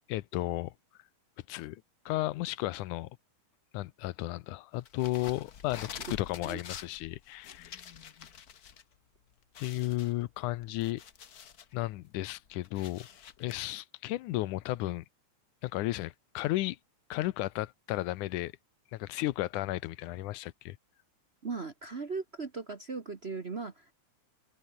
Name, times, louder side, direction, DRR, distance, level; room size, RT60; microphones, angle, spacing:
voice 1, 0.1-0.7 1.5-3.1 3.7-7.8 9.6-11.0 11.7-13.1 13.4-15.1 15.6-16.8 17.1-18.5 18.9-20.8, left 17 dB, 90° left, 2.3 m, -34 dB
sound 1, 4.9-8.8 9.2-9.3 9.5-11.7 12.2-13.6, left 8 dB, 60° left, 0.9 m, -47 dB
voice 2, 21.4-23.9, right 4 dB, 65° right, 0.6 m, -38 dB
omnidirectional pair, 3.4 m